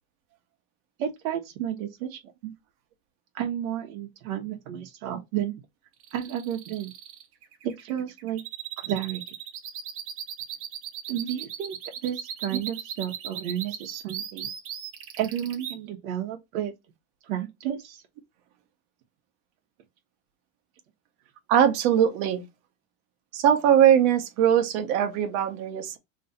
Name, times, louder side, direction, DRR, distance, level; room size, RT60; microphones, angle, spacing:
voice 1, 1.0-2.5 3.3-5.6 6.1-6.9 7.6-8.4 8.8-9.2 11.1-11.8 12.0-14.5 15.2-16.7 17.3-18.0, right 10 dB, 85° right, 1.1 m, -32 dB
sound 1, 6.0-15.8, right 9 dB, 35° right, 0.8 m, -37 dB
voice 2, 21.5-22.4 23.3-26.0, right 9 dB, 60° right, 1.1 m, -21 dB
3.1 x 2.7 x 4.1 m
supercardioid pair, 150°, 40 cm